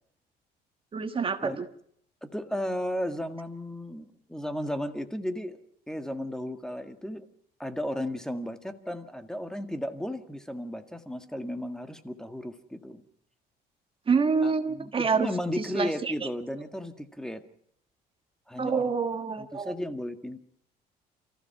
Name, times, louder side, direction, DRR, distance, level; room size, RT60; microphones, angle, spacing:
voice 1, 0.9-1.5 14.1-15.3 15.6-16.1 18.6-19.7, right 5 dB, 30° right, 8 dB, 1.4 m, -27 dB
voice 2, 2.2-5.6 5.9-7.3 7.6-13.0 14.4-17.4 18.5-19.0 19.4-20.4, left 1 dB, 5° left, 8 dB, 1.8 m, -34 dB
29.5 x 15.0 x 5.9 m, 0.68 s
cardioid pair, 110°, 17 cm